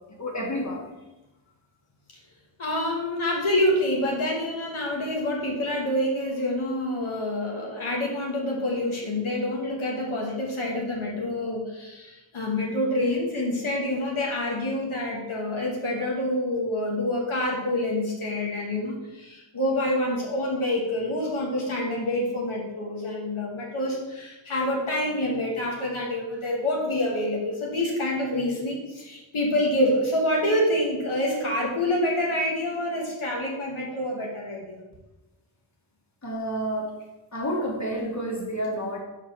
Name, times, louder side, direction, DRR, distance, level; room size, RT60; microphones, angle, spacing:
voice 1, 0.2-0.8 36.2-37.0 37.3-39.0, equal, 35° left, -2 dB, 1.7 m, -29 dB
voice 2, 2.6-34.8, left 1 dB, 90° left, -2 dB, 1.5 m, -27 dB
4.8 x 4.7 x 6.0 m, 1.0 s
wide cardioid pair, 70°, 47 cm